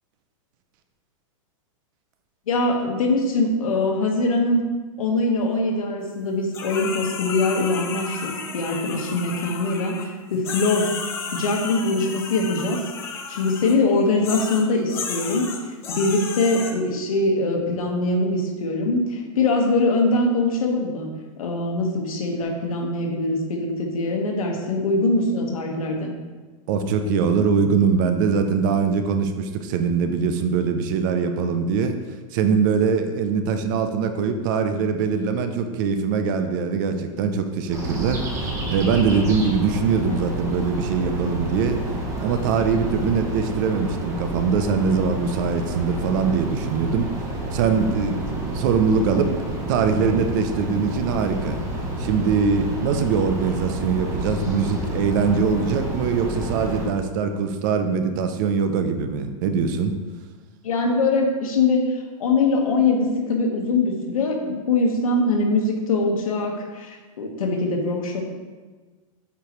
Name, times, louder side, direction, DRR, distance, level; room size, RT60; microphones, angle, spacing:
voice 1, 2.5-4.6 5.0-10.9 11.3-12.8 13.1-15.5 15.9-21.1 21.4-26.1 60.6-68.2, left 2 dB, 90° left, 2 dB, 1.4 m, -22 dB
sound 1, 6.5-10.1 10.4-13.7 14.2-16.7, left 5 dB, 15° left, 0.4 m, -33 dB
voice 2, 26.7-32.0 32.3-41.8 42.2-47.1 47.5-51.6 52.0-60.0, right 5 dB, 35° right, 8 dB, 0.5 m, -22 dB
sound 2, 37.7-56.9, right 1 dB, 15° right, 1.0 m, -29 dB
8.2 x 4.8 x 3.1 m, 1.4 s
supercardioid pair, 160°, 17 cm